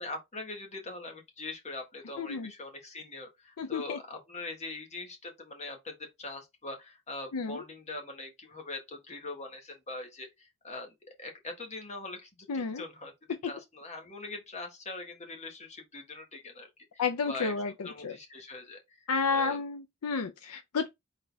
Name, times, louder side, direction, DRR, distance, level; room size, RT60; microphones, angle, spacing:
voice 1, 0.0-13.1 13.4-19.6, left 2 dB, 30° left, 1.4 m, -42 dB
voice 2, 2.2-2.5 3.6-4.0 7.3-7.6 12.5-12.8 13.4-13.5 17.0-18.2 19.1-20.9, left 5 dB, 75° left, 0.5 m, -31 dB
4.1 x 3.9 x 3.4 m
head